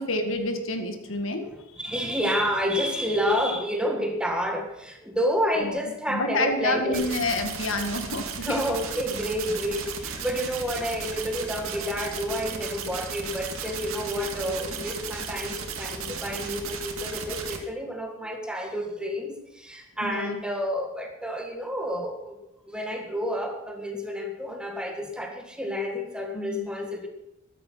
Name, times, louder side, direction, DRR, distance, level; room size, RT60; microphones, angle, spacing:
voice 1, 0.0-1.8 5.6-8.6 20.0-20.4 26.3-26.7, left 2 dB, 65° left, 6 dB, 2.0 m, -29 dB
voice 2, 1.5-7.0 8.4-22.4 22.7-27.1, equal, 5° right, 3 dB, 1.8 m, -29 dB
sound 1, 6.9-17.6, right 5 dB, 85° right, 2.2 m, -35 dB
14.0 x 12.5 x 5.9 m, 0.87 s
head